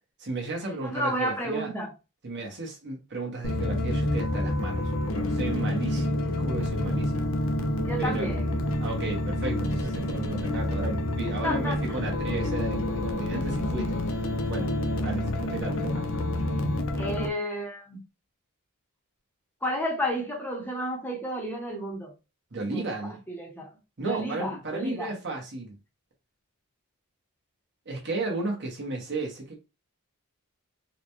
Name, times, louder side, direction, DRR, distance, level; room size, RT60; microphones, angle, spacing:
voice 1, 0.2-1.7 2.2-4.8 5.1-7.2 8.0-8.3 8.8-14.0 14.5-14.7 15.0-16.0 22.5-23.2 24.0-25.7 27.9-29.6, right 2 dB, 55° right, 1.1 m, -34 dB
voice 2, 0.8-1.9 7.8-8.5 11.4-11.8 13.3-13.4 17.0-18.0 19.6-22.1 22.6-22.9 23.3-23.7 24.0-25.1, equal, 10° left, 0.7 m, -31 dB
sound 1, 3.4-17.3, left 1 dB, 65° left, 0.6 m, -28 dB
4.0 x 2.2 x 3.0 m
head